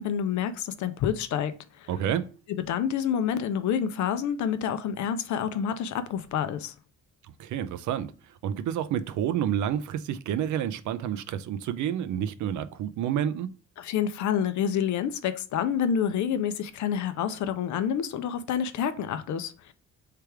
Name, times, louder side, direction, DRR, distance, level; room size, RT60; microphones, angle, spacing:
voice 1, 0.0-1.9 2.5-6.7 13.8-19.7, left 8 dB, 75° left, 0.6 m, -28 dB
voice 2, 1.9-2.3 7.2-13.5, right 10 dB, 75° right, 0.5 m, -29 dB
3.3 x 3.3 x 4.6 m
cardioid pair, 90°, 30 cm